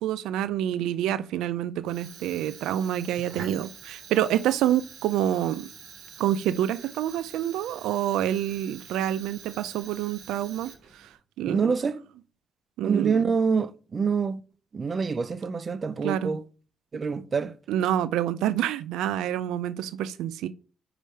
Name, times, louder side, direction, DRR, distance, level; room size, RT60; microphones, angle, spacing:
voice 1, 0.0-5.7 6.2-11.7 12.8-13.3 16.0-16.3 17.7-20.5, right 11 dB, 90° right, 0.4 m, -27 dB
Fire, 1.8-11.1, right 6 dB, 75° right, 2.1 m, -46 dB
voice 2, 11.4-12.0 12.8-14.4 14.7-16.4 16.9-17.5, right 5 dB, 40° right, 0.6 m, -26 dB
5.4 x 5.0 x 6.4 m
cardioid pair, 90°, 0 cm